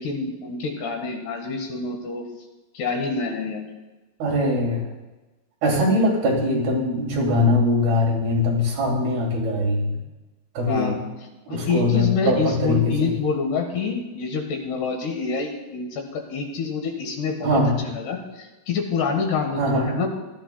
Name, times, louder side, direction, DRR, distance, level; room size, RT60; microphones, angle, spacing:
voice 1, 0.0-2.2 2.7-3.6 10.7-11.0 11.5-17.6 17.9-20.1, left 5 dB, 70° left, 3 dB, 3.3 m, -27 dB
voice 2, 4.2-4.8 5.6-10.0 10.5-10.9 11.5-13.1 17.4-17.7 19.6-19.9, left 1 dB, 60° right, -3 dB, 4.5 m, -21 dB
19.0 x 13.5 x 2.3 m, 1.1 s
omnidirectional pair, 5.0 m